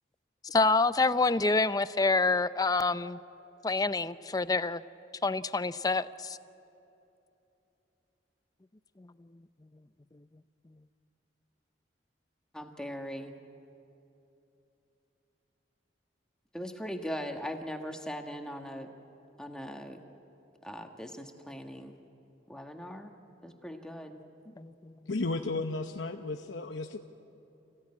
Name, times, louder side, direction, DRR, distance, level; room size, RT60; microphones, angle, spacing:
voice 1, 0.4-3.2 3.6-4.8 5.2-6.4 9.0-9.1 24.6-24.7, left 3 dB, 20° left, 13 dB, 0.5 m, -27 dB
voice 2, 12.5-13.3 16.5-18.9 19.4-20.0 20.6-22.0 22.5-23.1 23.4-24.2, equal, 5° left, 3 dB, 1.4 m, -40 dB
voice 3, 25.1-27.0, left 3 dB, 90° left, 5 dB, 0.9 m, -33 dB
28.5 x 16.5 x 9.7 m, 2.9 s
head